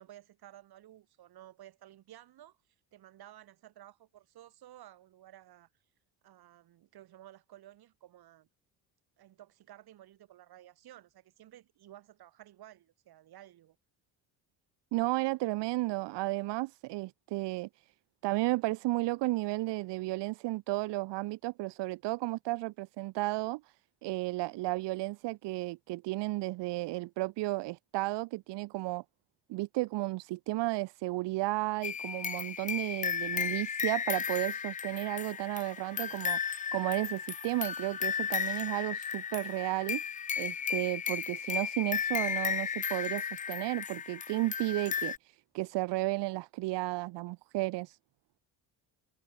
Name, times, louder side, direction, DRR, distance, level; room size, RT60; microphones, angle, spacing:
voice 1, 0.0-2.6 2.9-5.7 6.2-8.5 9.2-13.8, right 13 dB, 60° right, 6.8 m, -54 dB
voice 2, 14.9-17.8 18.2-23.6 24.0-29.0 29.5-36.4 36.7-40.0 40.4-48.0, right 20 dB, 85° right, 1.6 m, -33 dB
sound 1, 31.8-45.2, left 7 dB, 20° left, 0.4 m, -35 dB
cardioid pair, 130°, 41 cm